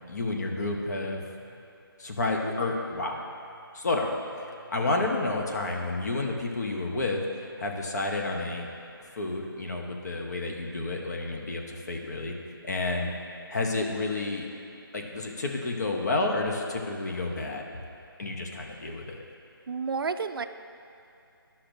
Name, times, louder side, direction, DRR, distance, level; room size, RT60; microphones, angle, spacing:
voice 1, 0.1-1.2 2.0-3.2 3.7-8.7 9.2-12.4 12.6-13.1 13.5-14.5 14.9-17.7 18.2-19.2, left 2 dB, 45° left, 1 dB, 0.8 m, -30 dB
voice 2, 19.7-20.5, right 5 dB, 70° right, 10 dB, 0.4 m, -30 dB
12.0 x 5.7 x 2.6 m, 2.6 s
figure-of-eight pair, 170°, 13 cm